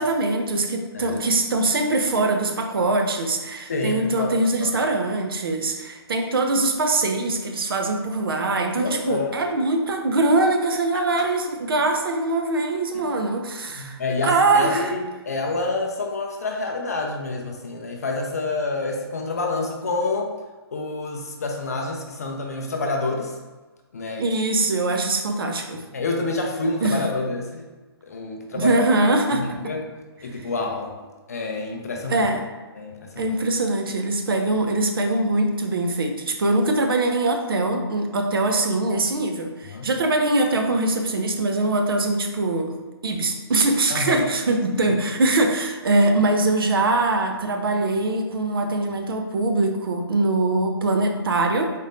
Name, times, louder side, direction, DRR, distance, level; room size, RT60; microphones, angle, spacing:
voice 1, 0.0-14.9 24.2-25.8 26.8-27.0 28.5-29.5 30.2-30.5 32.1-32.5 33.2-42.7 43.0-51.7, right 2 dB, 60° right, 4 dB, 0.6 m, -22 dB
voice 2, 3.7-4.3 4.6-4.7 8.7-9.3 10.9-11.0 12.9-13.2 13.7-20.3 20.7-23.3 23.9-24.3 25.9-27.6 28.0-28.8 29.4-29.8 30.2-30.9 31.3-32.2 32.8-33.3 39.7-39.9 43.9-44.3 44.9-45.0, left 3 dB, 40° left, 1 dB, 0.4 m, -28 dB
4.1 x 2.5 x 3.4 m, 1.2 s
hypercardioid pair, 175°, 14 cm